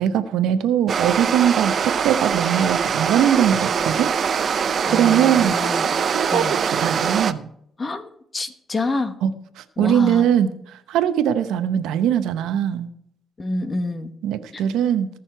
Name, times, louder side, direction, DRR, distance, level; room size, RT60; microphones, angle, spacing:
voice 1, 0.0-4.1 4.9-5.5 6.1-7.5 9.2-12.9 14.2-15.1, right 9 dB, 90° right, 11 dB, 0.8 m, -21 dB
sound 1, 0.9-7.3, right 7 dB, 50° right, 0.6 m, -23 dB
voice 2, 4.9-5.9 6.3-6.6 7.8-9.1 9.8-10.3 13.4-14.1 14.5-14.6, left 2 dB, 30° left, 9 dB, 1.3 m, -27 dB
19.0 x 6.4 x 4.5 m, 0.71 s
cardioid pair, 90°, 0 cm